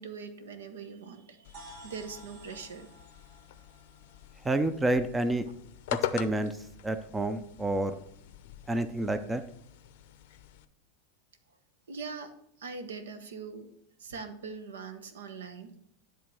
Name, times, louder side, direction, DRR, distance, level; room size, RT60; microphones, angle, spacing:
voice 1, 0.0-2.9 11.9-12.3 12.6-13.7 14.0-15.7, right 5 dB, 70° right, 8 dB, 1.0 m, -42 dB
sound 1, 1.4-10.6, left 12 dB, 60° left, 0.6 m, -42 dB
sound 2, 1.5-5.3, right 1 dB, 50° right, 2.4 m, -53 dB
voice 2, 4.4-5.5 6.1-6.6 6.8-8.0 8.7-9.4, right 2 dB, 10° right, 11 dB, 0.5 m, -28 dB
10.5 x 3.7 x 6.0 m, 0.73 s
figure-of-eight pair, 85°, 0 cm